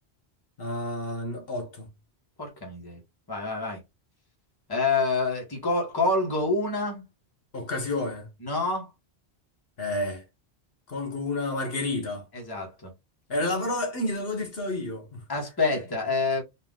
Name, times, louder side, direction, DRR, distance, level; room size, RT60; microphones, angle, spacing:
voice 1, 0.6-1.9 7.5-8.3 9.8-10.2 10.9-12.2 13.3-15.2, left 2 dB, 65° left, 1.3 m, -30 dB
voice 2, 2.4-3.0 3.3-3.8 4.7-7.0 8.4-8.9 12.3-12.9 15.3-16.4, left 3 dB, 20° left, 1.2 m, -27 dB
4.1 x 2.5 x 3.6 m
omnidirectional pair, 1.1 m